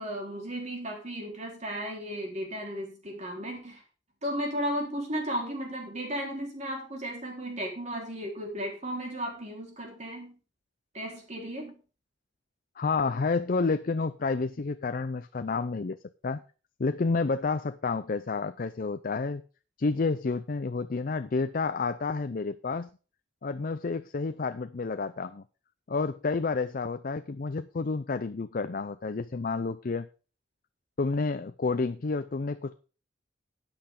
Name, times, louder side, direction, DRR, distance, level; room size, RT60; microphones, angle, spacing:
voice 1, 0.0-3.8 4.2-10.3 10.9-11.8, equal, 40° right, 4.1 m, -35 dB
voice 2, 12.8-16.0 16.2-16.4 16.8-19.4 19.8-22.9 23.4-25.4 25.9-30.1 31.0-32.7, left 4 dB, 50° left, 0.5 m, -30 dB
13.0 x 8.9 x 3.8 m
head